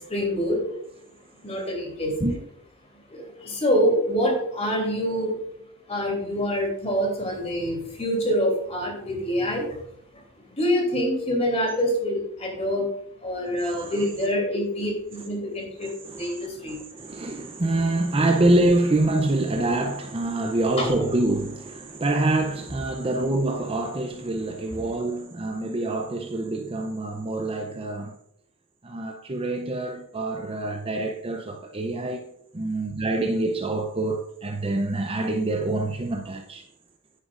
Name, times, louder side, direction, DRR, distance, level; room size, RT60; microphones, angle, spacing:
voice 1, 0.1-0.6 1.4-2.4 3.1-5.3 5.9-9.6 10.6-12.8 13.2-16.8 20.8-20.9, equal, 30° left, 2.9 m, -26 dB
voice 2, 13.5-14.1 15.8-28.1 28.8-32.2 32.5-36.6, right 2 dB, 25° right, 0.6 m, -26 dB
9.9 x 9.2 x 2.5 m
head